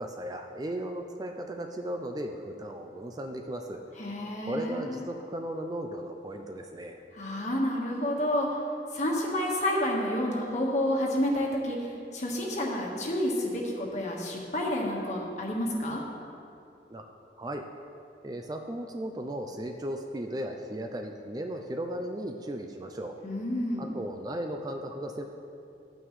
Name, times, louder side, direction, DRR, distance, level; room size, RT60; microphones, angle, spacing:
voice 1, 0.0-3.8 4.5-7.0 16.9-17.1 17.4-17.7 18.2-23.2 23.8-25.2, right 1 dB, 20° right, 4 dB, 0.4 m, -36 dB
voice 2, 4.0-5.0 7.1-8.5 8.9-11.8 12.1-16.0 23.2-23.9, left 1 dB, 40° left, -2 dB, 1.4 m, -29 dB
12.5 x 9.1 x 3.2 m, 2.7 s
head